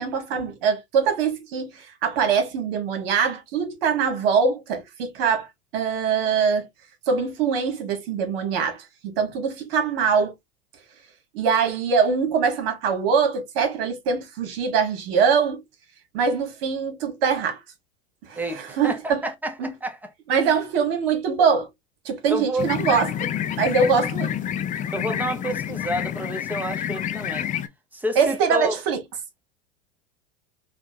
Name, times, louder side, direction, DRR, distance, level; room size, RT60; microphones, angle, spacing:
voice 1, 0.0-5.5 5.7-6.7 7.1-10.3 11.3-15.6 16.1-17.6 18.2-19.2 19.6-19.7 20.3-21.7 22.0-23.3 23.6-24.4 28.1-29.0, right 6 dB, 65° right, 1.5 m, -23 dB
voice 2, 18.4-20.1 22.3-22.7 23.8-24.0 24.9-27.5 27.9-28.8, right 1 dB, 5° right, 0.7 m, -29 dB
sound 1, 22.6-27.7, left 10 dB, 25° left, 0.4 m, -28 dB
3.5 x 2.5 x 2.6 m
hypercardioid pair, 95°, 30 cm